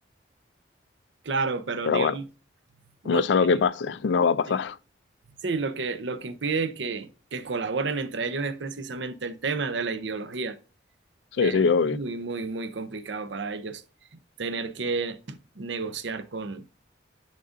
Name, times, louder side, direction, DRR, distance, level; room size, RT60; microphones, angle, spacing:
voice 1, 1.2-2.3 3.0-3.2 4.5-4.6 5.4-10.6 11.4-11.6 11.9-13.8 14.4-16.6, right 4 dB, 75° right, 0.7 m, -31 dB
voice 2, 1.8-2.2 3.0-4.8 11.4-12.0, left 5 dB, 70° left, 0.4 m, -22 dB
10.5 x 3.8 x 2.6 m
head